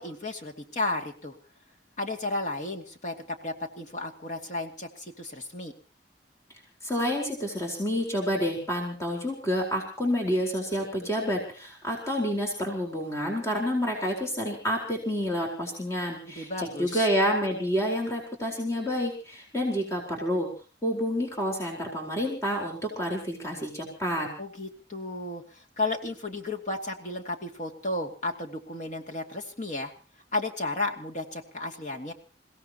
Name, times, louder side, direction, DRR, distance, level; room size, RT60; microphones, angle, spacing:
voice 1, 0.0-1.4 2.0-5.7 16.3-17.1 24.4-29.9 30.3-32.1, left 2 dB, 45° left, 1 dB, 2.5 m, -33 dB
voice 2, 6.8-20.5 20.8-24.3, equal, 15° left, -1 dB, 4.3 m, -29 dB
29.0 x 17.0 x 3.0 m, 0.36 s
head